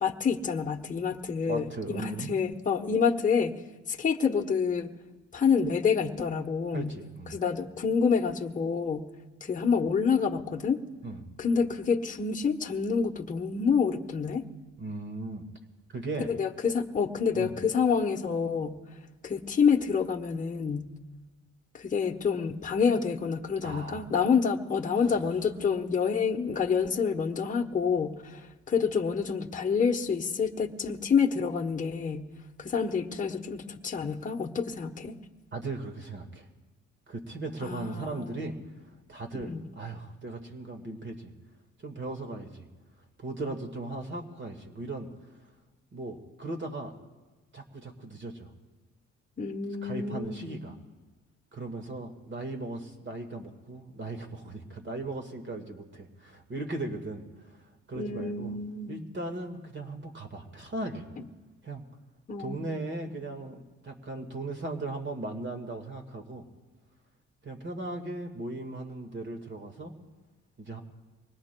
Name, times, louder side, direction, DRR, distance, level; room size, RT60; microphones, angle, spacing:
voice 1, 0.0-3.6 3.9-4.9 5.3-7.0 7.3-9.1 9.4-10.8 11.4-14.4 16.2-18.8 19.2-20.9 21.7-32.3 32.6-35.1 37.6-38.4 39.3-39.7 49.4-50.6 57.9-58.9 62.3-63.1, left 6 dB, 25° left, 2 dB, 1.0 m, -28 dB
voice 2, 1.5-2.3 6.7-7.4 11.0-11.2 14.8-15.4 15.9-16.3 17.3-17.5 23.6-24.0 35.5-36.5 37.1-38.6 39.1-41.3 41.8-42.7 43.2-45.1 45.9-47.0 47.5-48.5 49.8-50.8 51.5-57.6 57.9-58.5 58.9-61.0 61.6-61.8 62.4-66.5 67.4-69.9 70.6-70.8, right 2 dB, 40° right, 3 dB, 1.7 m, -37 dB
25.0 x 20.5 x 2.2 m, 1.2 s
cardioid pair, 90°, 30 cm